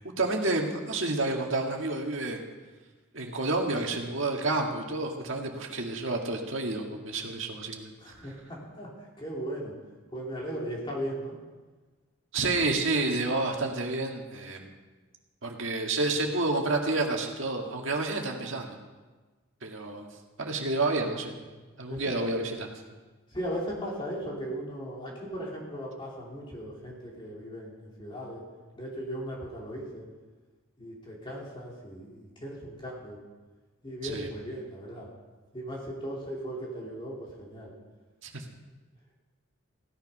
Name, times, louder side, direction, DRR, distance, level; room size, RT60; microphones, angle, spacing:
voice 1, 0.2-2.4 3.1-7.9 12.3-14.7 15.4-18.8 19.6-20.1 20.4-21.3 21.8-22.7 34.0-34.3 38.2-38.4, right 2 dB, 60° right, 1 dB, 1.9 m, -29 dB
voice 2, 8.0-8.9 9.2-9.8 10.1-11.3 21.9-22.5 23.3-28.4 28.7-30.0 30.8-33.2 33.8-35.1 35.5-37.7, equal, 25° left, -3 dB, 2.9 m, -37 dB
16.0 x 10.5 x 5.5 m, 1.3 s
head